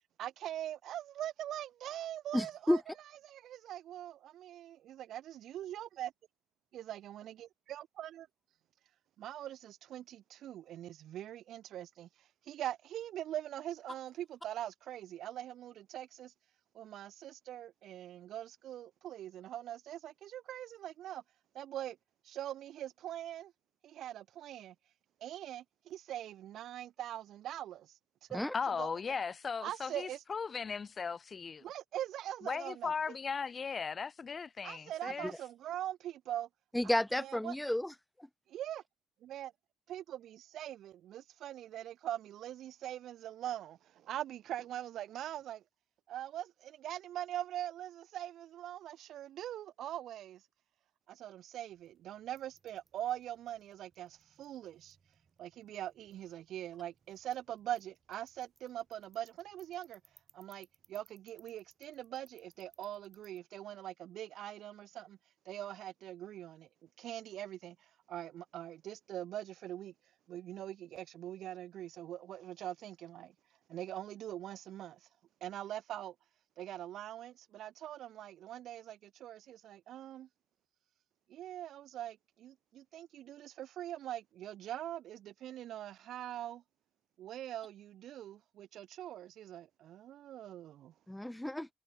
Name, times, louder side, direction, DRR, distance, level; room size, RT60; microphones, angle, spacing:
voice 1, 0.2-2.8 3.2-6.1 6.7-8.3 9.2-16.3 16.7-21.2 21.5-22.0 22.2-23.5 23.8-24.8 25.2-27.9 28.3-28.9 29.6-30.2 31.6-32.9 34.6-36.5 37.1-37.6 38.5-38.8 39.2-39.5 39.9-45.6 46.1-50.4 51.1-55.0 55.4-60.0 60.3-65.2 65.5-69.9 70.3-73.3 73.7-75.1 75.4-76.1 76.6-80.3 81.3-86.6 87.2-90.9, right 12 dB, 75° right, 4.1 m, -43 dB
voice 2, 2.3-2.8 28.3-28.5 36.7-37.9 91.1-91.7, left 1 dB, 5° left, 0.5 m, -31 dB
voice 3, 28.5-31.6 32.4-35.3, left 5 dB, 40° left, 0.8 m, -37 dB
sound 1, 51.7-63.4, right 5 dB, 40° right, 8.0 m, -69 dB
cardioid pair, 90°, 0 cm